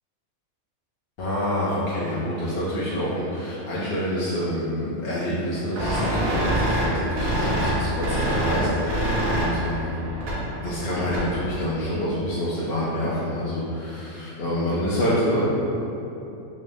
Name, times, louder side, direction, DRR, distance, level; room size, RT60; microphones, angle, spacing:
voice 1, 1.2-9.9 10.6-15.4, equal, 60° left, -9 dB, 0.7 m, -27 dB
sound 1, 5.8-11.5, right 1 dB, 90° right, 1.3 m, -25 dB
3.7 x 2.5 x 3.3 m, 2.9 s
omnidirectional pair, 1.4 m